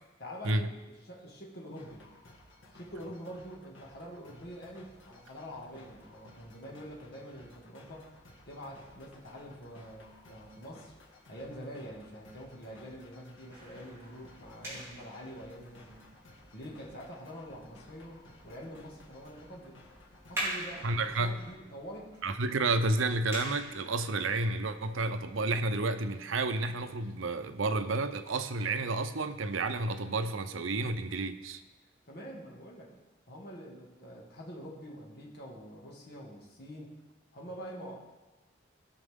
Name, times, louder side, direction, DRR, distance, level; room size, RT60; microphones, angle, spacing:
voice 1, 0.2-2.0 2.7-8.1 8.5-10.9 11.3-16.0 16.5-19.8 20.3-22.1 32.1-32.9 33.3-36.9 37.3-38.0, equal, 55° left, -3 dB, 2.1 m, -46 dB
sound 1, 1.8-21.6, left 1 dB, 75° left, 1.8 m, -57 dB
sound 2, 13.5-27.7, right 1 dB, 15° right, 3.5 m, -46 dB
voice 2, 20.8-21.4 22.2-31.6, right 2 dB, 85° right, 10 dB, 0.7 m, -31 dB
17.0 x 6.0 x 3.7 m, 1.1 s
head